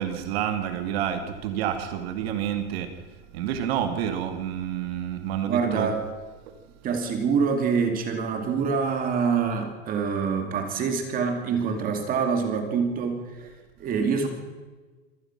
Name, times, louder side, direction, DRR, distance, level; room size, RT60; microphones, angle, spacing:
voice 1, 0.0-2.9 3.3-5.9, right 9 dB, 60° right, 8 dB, 2.4 m, -29 dB
voice 2, 5.5-6.0 6.8-13.5 13.8-14.3, right 5 dB, 25° right, 6 dB, 2.5 m, -25 dB
25.5 x 17.5 x 6.0 m, 1.3 s
supercardioid pair, 170°, 34 cm